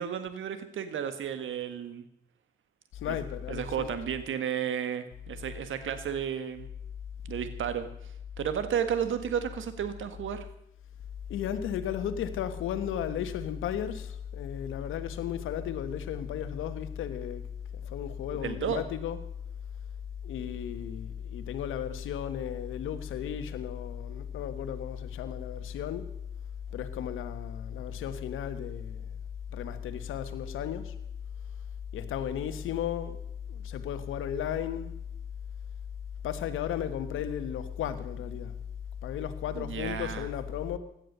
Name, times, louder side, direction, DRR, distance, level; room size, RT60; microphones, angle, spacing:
voice 1, 0.0-2.1 3.1-3.2 3.5-6.7 7.2-7.9 8.4-10.5 18.4-18.8 39.5-40.3, right 8 dB, 75° right, 10 dB, 1.7 m, -32 dB
voice 2, 2.9-3.9 11.3-17.4 17.7-19.2 20.2-26.1 26.7-29.1 29.5-30.9 31.9-33.2 33.5-34.9 36.2-38.5 39.0-40.8, left 9 dB, 85° left, 11 dB, 1.3 m, -34 dB
16.5 x 11.5 x 6.7 m, 0.75 s
supercardioid pair, 45°, 20 cm